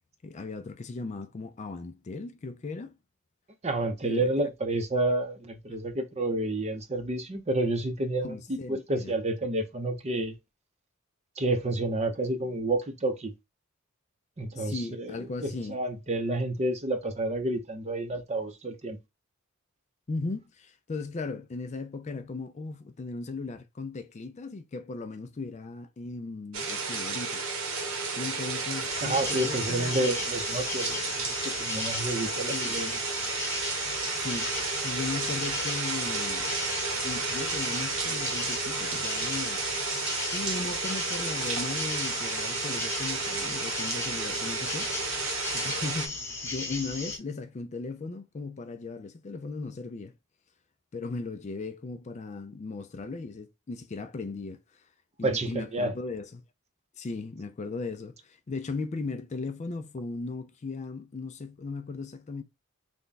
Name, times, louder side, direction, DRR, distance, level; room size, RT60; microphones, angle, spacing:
voice 1, 0.2-3.0 4.0-4.3 5.7-5.8 8.2-9.1 14.5-15.8 20.1-27.4 28.2-30.1 32.5-32.8 34.1-36.5 37.0-39.7 40.3-44.9 45.5-50.1 50.9-54.8 55.2-56.4 57.0-62.4, left 3 dB, 35° left, 0.4 m, -37 dB
voice 2, 3.6-10.3 11.4-13.3 14.4-15.2 15.4-19.0 29.0-32.9 55.2-55.9, right 2 dB, 30° right, 0.7 m, -30 dB
sound 1, 26.5-46.1, right 4 dB, 70° right, 1.1 m, -32 dB
sound 2, 28.9-47.2, left 3 dB, 15° left, 1.0 m, -36 dB
3.5 x 2.2 x 3.9 m
head